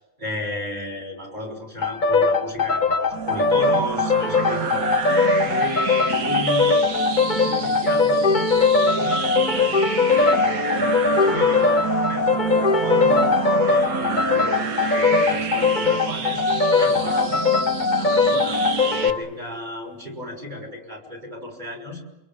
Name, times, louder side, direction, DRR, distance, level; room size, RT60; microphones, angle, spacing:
voice 1, 0.2-4.9 5.4-6.8 7.3-8.5 8.8-13.3 13.6-16.5 16.8-18.6 19.0-22.0, equal, 20° right, 3 dB, 6.1 m, -34 dB
sound 1, 1.8-19.2, left 4 dB, 30° left, 0.9 m, -20 dB
sound 2, 3.1-19.1, right 6 dB, 50° right, 1.5 m, -28 dB
28.5 x 26.0 x 7.6 m, 0.96 s
omnidirectional pair, 2.1 m